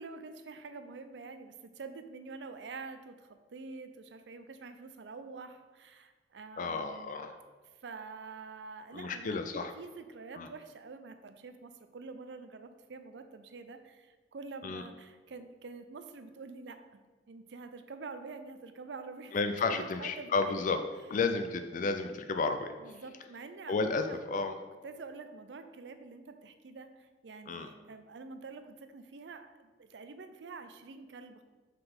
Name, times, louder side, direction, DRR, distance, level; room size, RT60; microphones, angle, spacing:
voice 1, 0.0-7.1 7.8-17.0 17.3-20.7 22.8-24.2 24.8-31.4, right 4 dB, 80° right, 9 dB, 0.5 m, -47 dB
voice 2, 6.6-7.4 8.9-9.7 10.4-10.5 14.6-14.8 19.3-20.8 21.1-22.7 23.7-24.6 27.5-27.7, left 4 dB, 45° left, 7 dB, 0.4 m, -32 dB
5.6 x 3.9 x 5.3 m, 1.3 s
head